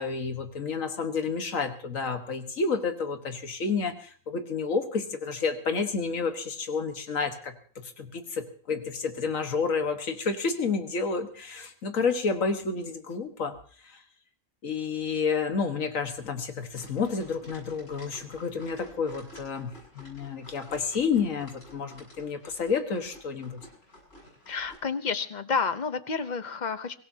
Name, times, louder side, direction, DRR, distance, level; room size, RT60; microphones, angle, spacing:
voice 1, 0.0-13.6 14.6-19.7 20.0-23.6, left 5 dB, 85° left, 7 dB, 1.9 m, -30 dB
sound 1, 16.7-24.8, left 1 dB, 65° left, 7.7 m, -52 dB
voice 2, 24.5-27.0, left 5 dB, 40° left, 12 dB, 0.9 m, -30 dB
23.5 x 17.0 x 2.8 m, 0.43 s
omnidirectional pair, 1.3 m